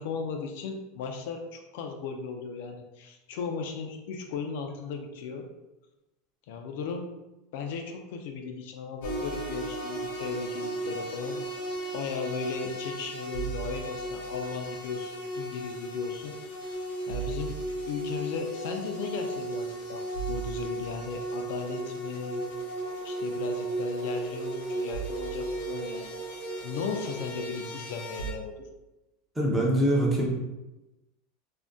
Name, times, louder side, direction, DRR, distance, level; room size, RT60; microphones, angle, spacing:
voice 1, 0.0-5.5 6.5-7.1 7.5-16.3 16.6-17.6 17.9-22.4 23.0-26.1 26.6-28.7, left 5 dB, 60° left, 3 dB, 0.3 m, -36 dB
sound 1, 9.0-28.3, right 2 dB, 75° left, 0.8 m, -35 dB
voice 2, 29.4-30.3, right 1 dB, 5° right, -4 dB, 0.5 m, -23 dB
2.5 x 2.1 x 3.4 m, 1.0 s
supercardioid pair, 170°, 0 cm